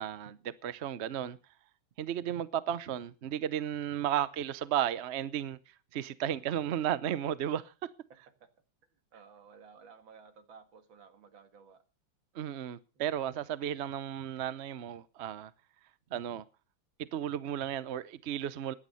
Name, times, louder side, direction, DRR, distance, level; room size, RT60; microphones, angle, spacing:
voice 1, 0.0-1.4 2.0-5.6 5.9-7.7 12.3-15.5 16.1-16.4 17.1-18.7, right 10 dB, 55° right, 0.7 m, -34 dB
voice 2, 9.1-11.8 13.0-13.1, right 5 dB, 85° right, 2.5 m, -55 dB
15.5 x 10.5 x 5.5 m
omnidirectional pair, 2.1 m